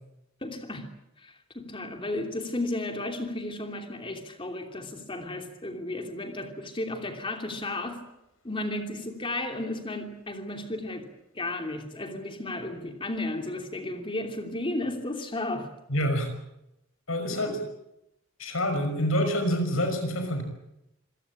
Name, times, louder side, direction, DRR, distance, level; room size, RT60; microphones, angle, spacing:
voice 1, 0.4-0.9 1.2-8.0 8.4-11.1 11.3-15.7 17.3-17.6, left 2 dB, 25° left, 2.9 m, -34 dB
voice 2, 15.9-16.3 17.1-17.6 18.4-20.4, equal, 80° left, 5.7 m, -27 dB
26.5 x 17.0 x 8.7 m
head